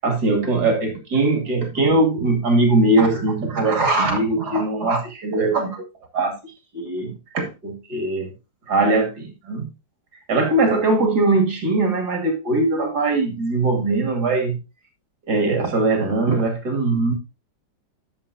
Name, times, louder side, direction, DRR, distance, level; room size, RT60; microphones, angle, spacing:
voice 1, 0.0-5.8 6.1-6.4 6.7-8.3 8.7-9.7 10.3-14.6 15.3-17.1, right 2 dB, 60° right, 3.0 m, -20 dB
12.0 x 7.4 x 2.7 m
omnidirectional pair, 1.9 m